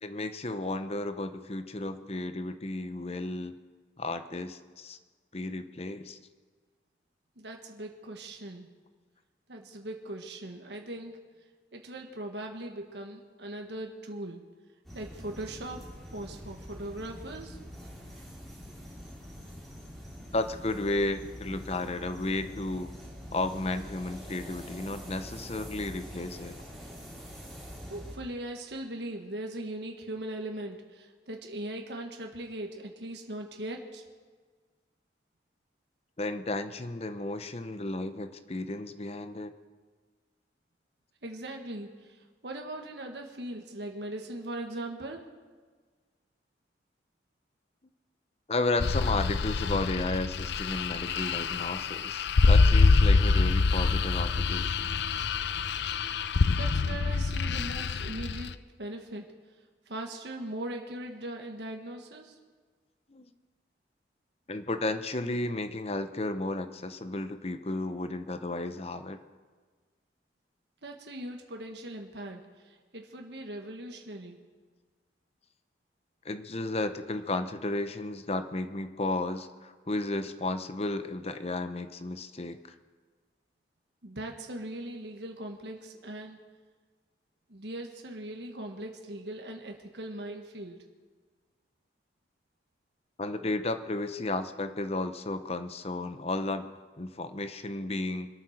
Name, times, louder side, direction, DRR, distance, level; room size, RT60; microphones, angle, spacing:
voice 1, 0.0-3.5 4.0-5.0 5.3-6.2 20.3-22.9 23.3-26.6 36.2-39.5 48.5-55.0 63.1-63.3 64.5-69.2 76.2-82.6 93.2-96.7 97.0-98.3, left 2 dB, 35° left, 10 dB, 0.8 m, -33 dB
voice 2, 7.4-8.7 9.5-11.2 11.7-14.4 14.9-17.6 27.9-34.0 41.2-42.2 42.4-45.2 56.6-59.3 59.9-62.4 70.8-74.4 84.0-86.4 87.5-90.8, right 1 dB, 75° right, 2 dB, 1.6 m, -40 dB
sound 1, 14.8-28.1, equal, ahead, 3.3 m, -45 dB
sound 2, 48.8-58.5, left 4 dB, 75° left, 0.5 m, -25 dB
24.5 x 8.9 x 6.5 m, 1.5 s
head